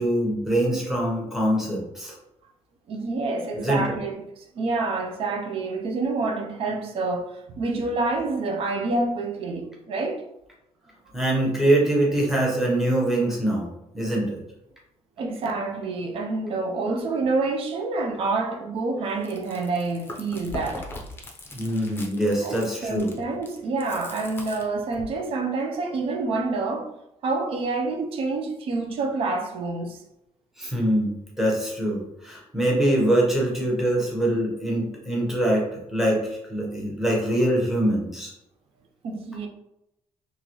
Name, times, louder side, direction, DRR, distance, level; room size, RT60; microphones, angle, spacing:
voice 1, 0.0-2.1 3.5-3.9 11.1-13.7 13.9-14.4 21.5-23.1 30.6-38.3, right 1 dB, 5° right, 1.0 m, -24 dB
voice 2, 2.9-10.2 15.2-20.9 22.4-26.9 27.2-30.0 39.0-39.5, right 3 dB, 55° right, 0.6 m, -27 dB
Chewing mastication, 19.1-25.2, left 2 dB, 20° left, 0.6 m, -40 dB
3.8 x 3.0 x 3.0 m
cardioid pair, 180°, 11 cm